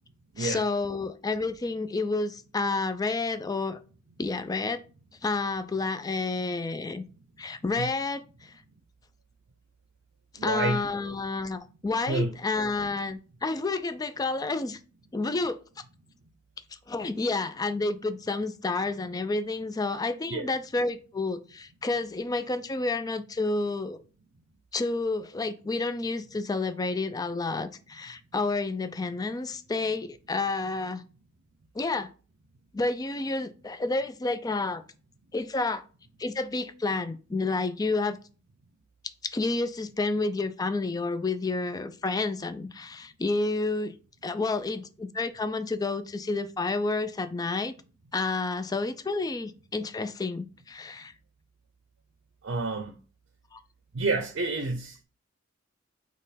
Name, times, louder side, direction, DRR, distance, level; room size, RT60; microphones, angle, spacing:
voice 1, 0.4-3.8 4.2-4.8 5.2-7.0 7.4-8.5 10.4-14.8 15.1-15.6 16.9-24.0 24.7-31.0 31.8-32.1 32.7-34.8 35.3-35.8 36.2-38.2 39.2-43.9 44.2-47.8 48.1-51.1 53.5-53.6, left 3 dB, 20° left, 0.3 m, -30 dB
voice 2, 10.4-10.8 12.1-12.3 20.3-20.5 52.4-53.0 53.9-55.0, right 3 dB, 65° right, 0.6 m, -29 dB
4.2 x 3.0 x 4.1 m
head